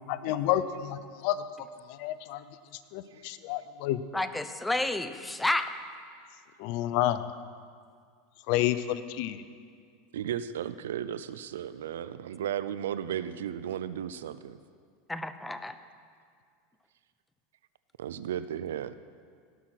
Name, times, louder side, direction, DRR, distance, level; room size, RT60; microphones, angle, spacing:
voice 1, 0.1-1.4 1.9-2.4 2.9-4.0 6.6-7.3 8.5-9.4, left 13 dB, 65° left, 13 dB, 0.6 m, -29 dB
voice 2, 4.1-5.7 15.1-15.8, left 2 dB, 5° left, 11 dB, 0.7 m, -30 dB
voice 3, 10.1-14.6 18.0-18.9, right 10 dB, 85° right, 14 dB, 0.4 m, -34 dB
18.0 x 6.2 x 5.9 m, 2.1 s
hypercardioid pair, 110°, 0 cm